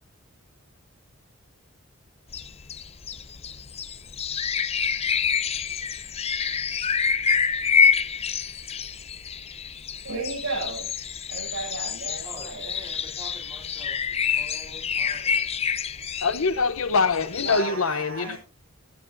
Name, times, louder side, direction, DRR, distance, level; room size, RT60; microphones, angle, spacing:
sound 1, 2.3-17.6, left 6 dB, 30° left, 0.6 m, -27 dB
voice 1, 10.0-10.9 11.3-12.8 17.4-18.4, right 3 dB, 85° right, 7.4 m, -33 dB
voice 2, 12.2-15.5 17.3-18.4, right 1 dB, 25° right, 3.9 m, -44 dB
voice 3, 16.2-18.4, left 4 dB, 80° left, 0.9 m, -24 dB
16.5 x 11.0 x 2.7 m
head